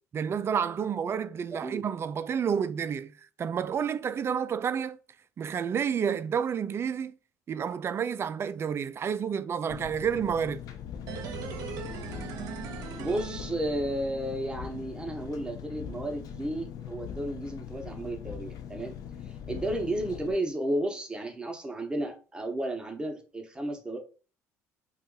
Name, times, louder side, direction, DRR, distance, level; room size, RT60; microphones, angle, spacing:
voice 1, 0.1-3.1 3.4-5.0 5.4-7.1 7.5-10.6, right 7 dB, 35° right, 0.3 m, -30 dB
Engine, 9.7-20.3, left 8 dB, 60° left, 0.5 m, -41 dB
sound 1, 11.1-14.2 14.5-14.6, right 5 dB, 65° right, 0.7 m, -39 dB
voice 2, 12.9-18.9 19.5-24.0, right 1 dB, 10° right, 0.9 m, -33 dB
2.6 x 2.3 x 3.8 m
supercardioid pair, 75°, 7 cm